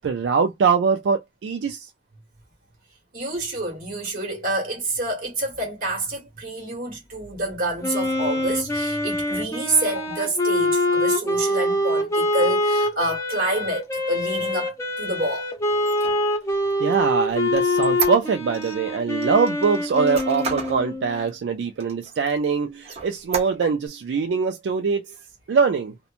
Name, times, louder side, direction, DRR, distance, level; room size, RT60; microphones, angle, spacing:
voice 1, 0.0-1.9 16.8-25.1 25.5-25.9, right 5 dB, 80° right, 0.3 m, -23 dB
voice 2, 3.1-15.5, right 2 dB, 50° right, 1.5 m, -28 dB
Wind instrument woodwind instrument, 7.8-21.2, left 1 dB, 15° left, 0.6 m, -24 dB
Squeak, 15.7-18.8 19.2-20.8 21.3-21.4 21.8-22.4 22.8-23.9, right 6 dB, 35° right, 0.8 m, -32 dB
2.9 x 2.1 x 2.4 m
head